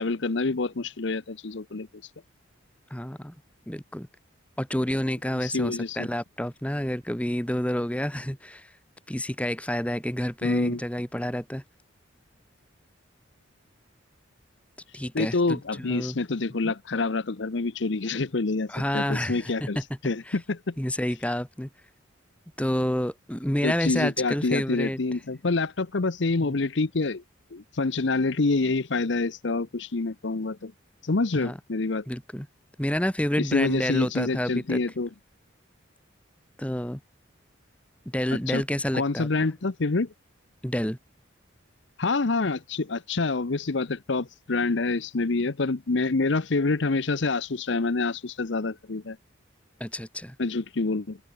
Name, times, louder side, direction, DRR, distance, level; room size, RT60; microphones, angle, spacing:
voice 1, 0.0-1.9 5.4-6.1 10.4-10.8 15.1-19.8 20.0-20.7 23.6-27.2 27.5-30.7 31.0-32.0 33.4-35.1 38.5-38.6 38.9-40.1 42.0-49.2 50.4-51.2, left 3 dB, 60° left, 0.8 m, -27 dB
voice 2, 2.9-3.3 3.7-4.1 4.6-8.7 9.1-11.6 14.9-16.2 16.6-16.7 18.7-20.4 20.8-21.7 22.6-25.2 26.4-26.6 31.3-31.6 32.1-32.5 32.8-34.8 36.6-37.0 38.0-39.5 40.6-41.0 49.8-50.4, equal, 5° left, 1.5 m, -29 dB
open air
head